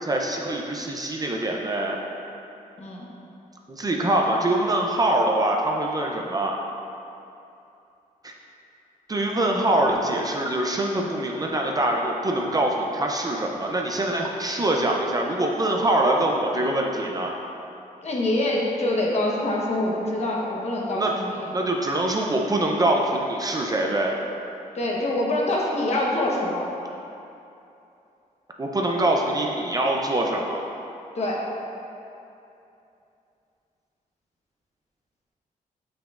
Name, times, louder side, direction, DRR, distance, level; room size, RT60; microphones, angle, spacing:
voice 1, 0.0-2.0 3.7-6.6 8.2-8.3 9.1-17.3 21.0-21.1 21.5-24.2 28.6-30.6, right 1 dB, 25° right, 0 dB, 0.5 m, -24 dB
voice 2, 18.0-21.5 24.7-26.7 31.1-31.4, left 1 dB, 50° left, -3 dB, 1.1 m, -25 dB
7.3 x 6.0 x 2.5 m, 2.7 s
cardioid pair, 110°, 15 cm